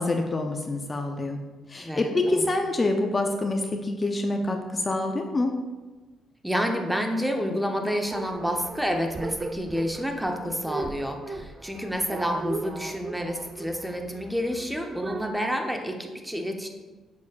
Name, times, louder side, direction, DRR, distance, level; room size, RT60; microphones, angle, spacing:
voice 1, 0.0-1.4 1.7-5.5, left 2 dB, 30° left, 4 dB, 0.6 m, -26 dB
voice 2, 1.8-2.6 6.4-16.7, equal, 5° right, 4 dB, 0.8 m, -29 dB
sound 1, 8.1-15.3, right 3 dB, 35° right, 0.3 m, -38 dB
7.2 x 6.3 x 2.4 m, 1.2 s
cardioid pair, 90°, 0 cm